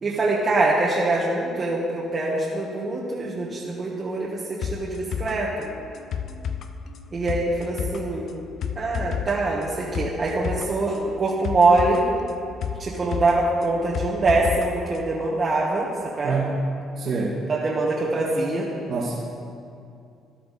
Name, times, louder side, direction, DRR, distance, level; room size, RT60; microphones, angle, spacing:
voice 1, 0.0-5.5 7.1-8.2 8.7-12.0 12.8-15.9 16.2-16.4 17.5-18.7, right 2 dB, 35° right, -5 dB, 1.6 m, -24 dB
sound 1, 4.6-14.7 15.0-15.1, left 7 dB, 60° left, 0.7 m, -32 dB
voice 2, 16.2-16.6 17.0-17.4 18.9-19.2, right 3 dB, 55° right, -7 dB, 2.0 m, -26 dB
13.0 x 11.0 x 4.2 m, 2.5 s
cardioid pair, 110°, 0 cm